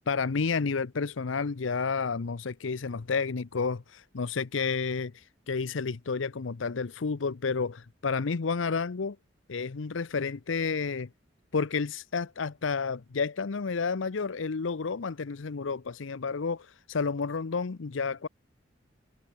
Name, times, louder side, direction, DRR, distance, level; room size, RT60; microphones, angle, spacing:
voice 1, 0.1-9.2 9.5-11.1 11.5-18.3, left 5 dB, 85° left, 0.7 m, -31 dB
head